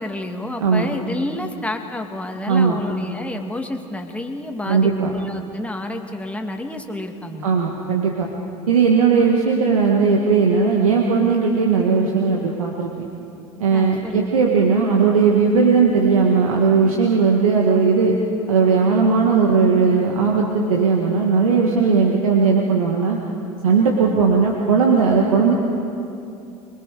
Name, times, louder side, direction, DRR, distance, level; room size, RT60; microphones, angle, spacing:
voice 1, 0.0-7.5 13.7-14.3, left 1 dB, 5° left, 3 dB, 2.1 m, -29 dB
voice 2, 0.6-0.9 2.5-2.8 4.7-5.1 7.4-8.3 8.7-13.1 13.6-18.2 18.5-23.2 23.6-25.5, right 5 dB, 80° right, -1 dB, 1.8 m, -17 dB
25.0 x 21.5 x 5.0 m, 2.7 s
hypercardioid pair, 75°, 18 cm